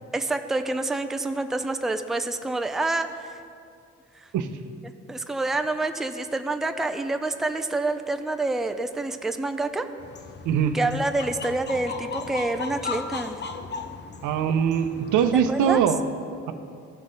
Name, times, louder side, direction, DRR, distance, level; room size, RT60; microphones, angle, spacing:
voice 1, 0.1-3.4 4.1-4.3 4.8-9.9 10.7-13.4 15.3-15.8, right 2 dB, ahead, 7 dB, 0.4 m, -27 dB
sound 1, 10.0-15.9, left 5 dB, 35° left, 0.6 m, -37 dB
voice 2, 10.4-10.8 14.2-16.0, right 8 dB, 80° right, 8 dB, 0.7 m, -22 dB
15.0 x 5.6 x 3.9 m, 2.4 s
cardioid pair, 90°, 30 cm